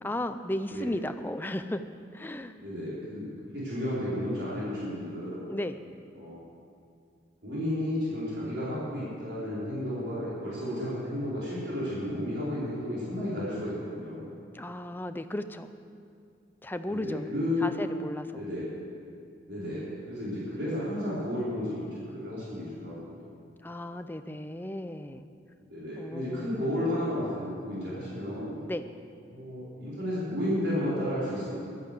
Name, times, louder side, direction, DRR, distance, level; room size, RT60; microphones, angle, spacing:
voice 1, 0.0-1.8 2.1-2.5 5.5-5.8 14.5-15.7 16.6-17.3 17.6-18.4 23.6-25.3 26.0-26.6 28.7-28.9, left 1 dB, 10° left, 9 dB, 0.5 m, -35 dB
voice 2, 2.6-5.4 6.1-6.4 7.4-14.3 16.9-17.7 18.3-18.7 19.5-21.9 22.1-23.2 25.7-28.5 29.3-31.5, left 1 dB, 70° right, -9 dB, 4.3 m, -32 dB
11.5 x 10.5 x 8.2 m, 2.4 s
head